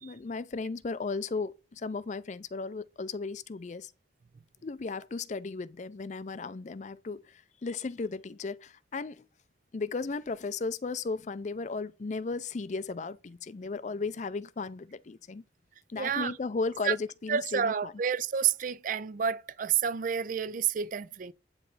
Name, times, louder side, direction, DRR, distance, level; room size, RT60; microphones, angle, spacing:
voice 1, 0.0-3.9 4.6-9.3 9.7-15.4 15.9-17.9, left 4 dB, 40° left, 0.4 m, -35 dB
voice 2, 16.0-16.3 16.8-16.9 17.3-21.3, right 7 dB, 50° right, 0.4 m, -29 dB
8.9 x 3.2 x 3.9 m
head